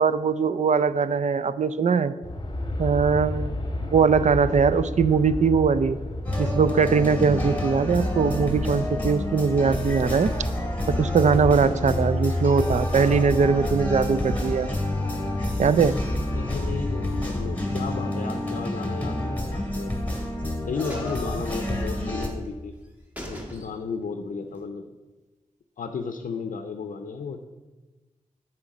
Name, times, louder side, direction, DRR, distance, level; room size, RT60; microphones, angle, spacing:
voice 1, 0.0-2.1 2.8-6.0 6.4-10.3 11.0-14.7 15.6-16.0, right 5 dB, 60° right, 14 dB, 0.4 m, -21 dB
Aircraft, 2.2-18.4, left 1 dB, 35° left, 1.1 m, -34 dB
sound 1, 6.2-22.3, left 1 dB, 10° left, 2.4 m, -28 dB
voice 2, 16.3-20.0 20.7-22.7 23.3-24.8 25.8-27.5, left 5 dB, 85° left, 6 dB, 0.5 m, -34 dB
sound 2, 19.8-20.4 20.8-22.1 22.4-22.5 22.8-22.9 23.2-24.1 24.4-24.5, equal, 10° right, 1.7 m, -40 dB
7.6 x 4.4 x 6.0 m, 1.2 s
cardioid pair, 50°, 13 cm